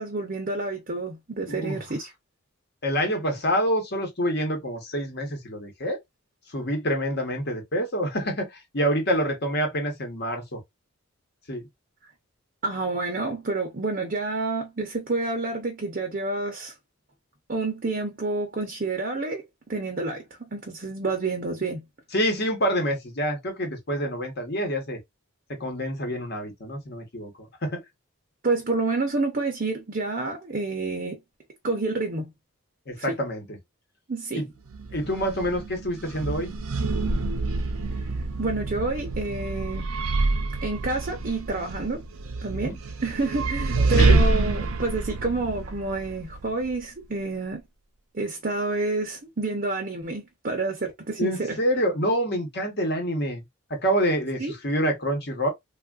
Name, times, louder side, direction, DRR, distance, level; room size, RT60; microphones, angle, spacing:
voice 1, 0.0-2.1 12.6-16.7 17.5-19.4 19.7-21.8 28.4-31.2 31.6-32.3 33.0-33.1 34.1-34.4 38.0-38.1 38.4-39.9 40.6-42.1 42.4-42.8 43.0-47.6 48.1-51.6 54.4-54.5, right 3 dB, 40° right, 0.7 m, -29 dB
voice 2, 1.5-1.8 2.8-6.0 6.5-10.6 11.5-11.7 22.1-25.0 25.5-27.8 32.9-33.5 34.3-34.4 34.9-36.5 42.5-42.8 43.8-44.2 51.2-53.4 53.7-55.5, equal, 50° left, 1.0 m, -27 dB
sound 1, 34.7-46.8, right 3 dB, 90° right, 0.6 m, -27 dB
3.4 x 2.4 x 2.4 m
head